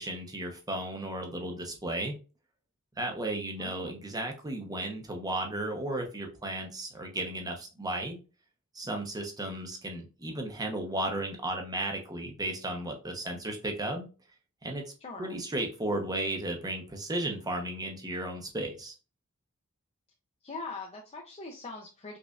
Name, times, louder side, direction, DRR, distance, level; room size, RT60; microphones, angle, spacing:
voice 1, 0.0-2.1 3.0-8.2 8.7-14.1 14.6-14.8 15.2-18.9, right 1 dB, 15° right, 2 dB, 0.7 m, -34 dB
voice 2, 3.6-4.0 15.0-15.4 20.4-22.2, left 3 dB, 30° left, -1 dB, 0.5 m, -42 dB
5.0 x 2.4 x 2.4 m, 0.33 s
head